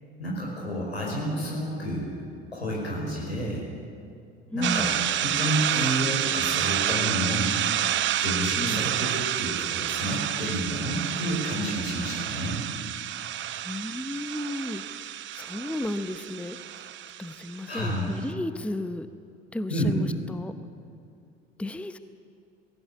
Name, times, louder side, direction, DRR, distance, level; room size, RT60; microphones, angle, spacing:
voice 1, 0.2-2.1 2.5-3.7 4.5-7.5 8.2-12.6 17.7-18.1 19.7-19.9, equal, 85° left, -3 dB, 5.1 m, -30 dB
voice 2, 4.5-4.9 8.6-8.9 13.6-16.9 17.2-19.1 19.5-20.5 21.6-22.0, left 1 dB, 5° left, 11 dB, 0.8 m, -34 dB
sound 1, 4.6-18.0, right 12 dB, 40° right, 0.8 m, -29 dB
19.5 x 16.0 x 8.5 m, 2.5 s
figure-of-eight pair, 60°, 31 cm